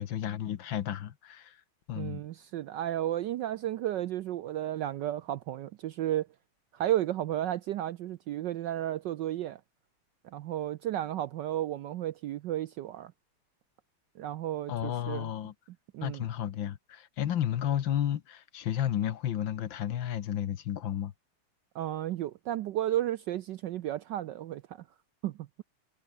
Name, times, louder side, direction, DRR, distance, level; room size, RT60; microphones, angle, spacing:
voice 1, 0.0-1.6 1.9-2.2 14.7-15.5 16.0-21.1, left 10 dB, 65° left, 1.7 m, -32 dB
voice 2, 2.0-6.3 6.7-9.6 10.3-13.1 14.2-15.3 15.9-16.2 21.7-24.8 25.2-25.6, right 12 dB, 70° right, 1.1 m, -33 dB
omnidirectional pair, 2.4 m